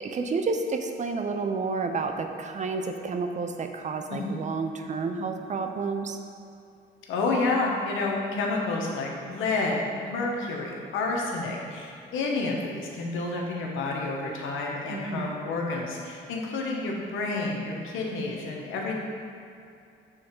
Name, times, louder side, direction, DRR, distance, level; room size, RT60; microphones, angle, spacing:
voice 1, 0.0-6.2 14.9-15.3, right 4 dB, 35° right, 5 dB, 0.5 m, -30 dB
voice 2, 4.1-4.4 7.1-18.9, left 3 dB, 85° left, -1 dB, 1.0 m, -29 dB
6.3 x 3.7 x 4.5 m, 2.6 s
cardioid pair, 90°, 20 cm